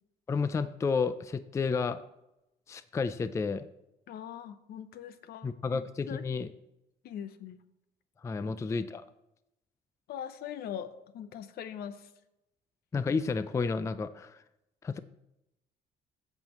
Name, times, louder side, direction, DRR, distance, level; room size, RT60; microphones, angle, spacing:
voice 1, 0.3-2.0 2.7-3.7 5.4-6.5 8.2-9.0 12.9-14.4 14.8-15.0, left 4 dB, 15° left, 13 dB, 0.3 m, -31 dB
voice 2, 4.1-5.8 6.1-6.2 7.0-7.6 8.5-8.6 10.1-12.1, left 9 dB, 65° left, 12 dB, 0.8 m, -41 dB
15.0 x 5.6 x 3.0 m, 0.89 s
cardioid pair, 110°, 17 cm